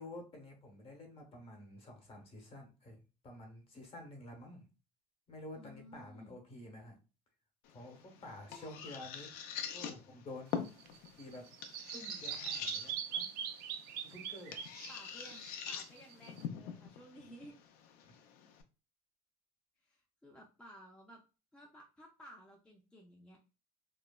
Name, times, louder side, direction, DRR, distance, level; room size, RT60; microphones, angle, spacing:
voice 1, 0.0-4.6 5.3-6.9 7.7-9.3 9.7-10.6 11.2-11.4 11.9-13.3 14.0-14.5 18.4-18.5, left 1 dB, 35° left, 2 dB, 0.9 m, -50 dB
voice 2, 5.6-6.4 8.1-8.2 8.5-8.8 14.9-17.5 19.8-21.2 21.5-23.4, equal, 5° left, 0 dB, 0.3 m, -56 dB
sound 1, 7.6-18.6, left 8 dB, 75° left, 0.5 m, -45 dB
Bird vocalization bird call bird song, 10.5-16.4, right 9 dB, 75° right, 0.4 m, -42 dB
3.0 x 2.1 x 2.2 m, 0.32 s
cardioid pair, 140°, 16 cm